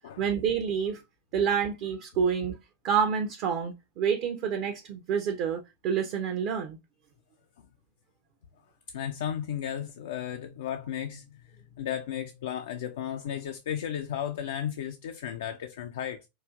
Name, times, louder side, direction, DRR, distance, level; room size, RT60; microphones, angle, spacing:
voice 1, 0.2-1.0 1.3-2.6 2.8-6.8, right 7 dB, 40° right, 0.5 m, -28 dB
voice 2, 8.9-16.3, left 9 dB, 60° left, 0.3 m, -34 dB
4.8 x 2.4 x 2.3 m
figure-of-eight pair, 90°, 0 cm